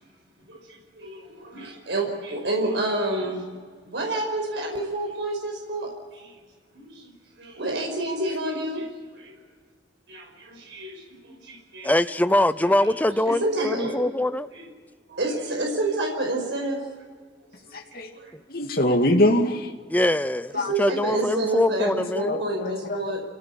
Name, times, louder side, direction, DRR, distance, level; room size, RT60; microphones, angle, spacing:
voice 1, 0.5-6.4 6.7-7.1 7.4-8.9 9.1-9.3 10.1-12.0 12.8-12.9 13.3-14.0 14.5-14.7 15.1-16.8 17.6-17.8 18.1-18.3 20.5-23.2, right 2 dB, 80° right, 1 dB, 5.3 m, -29 dB
voice 2, 11.8-14.5 19.9-20.5 20.8-22.4, left 1 dB, 10° left, 13 dB, 0.6 m, -23 dB
voice 3, 17.7-18.1 18.5-19.7 20.5-20.7 21.9-23.1, left 1 dB, 55° left, 3 dB, 2.4 m, -24 dB
27.5 x 18.0 x 8.6 m, 1.5 s
head